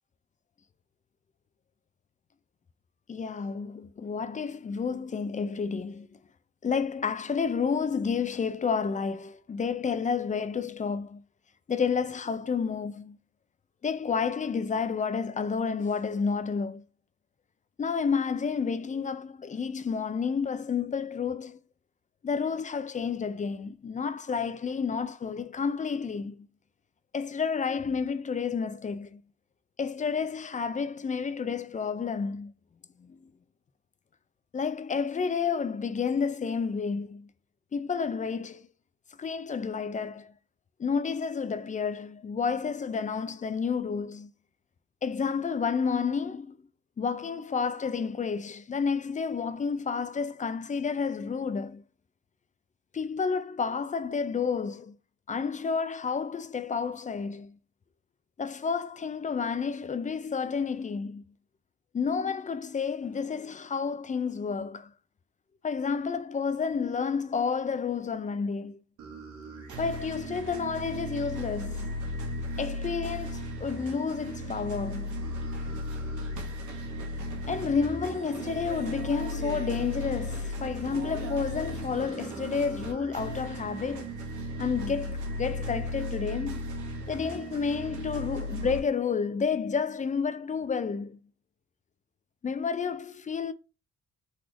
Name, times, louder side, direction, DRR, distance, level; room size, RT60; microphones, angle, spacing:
voice 1, 3.1-6.1 6.6-11.2 11.7-13.2 13.8-16.8 17.8-21.6 22.2-26.5 27.1-29.2 29.8-32.5 33.0-33.3 34.5-37.3 37.7-38.7 39.2-40.3 40.8-44.3 45.0-46.6 47.0-51.8 52.9-55.0 55.3-57.6 58.4-61.2 61.9-64.9 65.6-68.8 69.8-71.9 72.6-75.2 77.5-84.1 84.6-86.7 87.1-91.2 92.4-93.5, left 5 dB, 25° left, 0.4 m, -30 dB
sound 1, 69.0-88.8, equal, 75° right, 1.4 m, -36 dB
4.0 x 3.1 x 3.6 m
cardioid pair, 90°, 30 cm